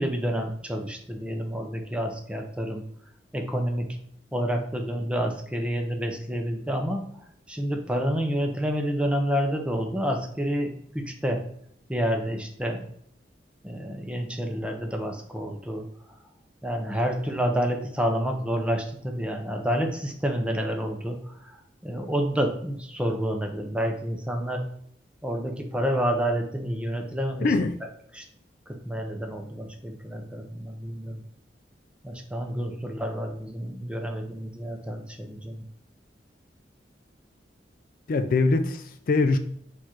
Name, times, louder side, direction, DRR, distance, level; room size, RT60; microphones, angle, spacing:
voice 1, 0.0-2.8 3.3-4.0 4.3-7.1 7.5-11.4 11.9-12.8 13.6-15.9 16.6-21.5 21.8-24.7 25.2-27.5 28.1-28.2 28.7-31.2 32.0-35.6, equal, 5° right, 3 dB, 0.5 m, -29 dB
voice 2, 27.4-27.7 38.1-39.4, left 3 dB, 55° left, 7 dB, 0.3 m, -23 dB
4.6 x 2.5 x 4.3 m, 0.69 s
head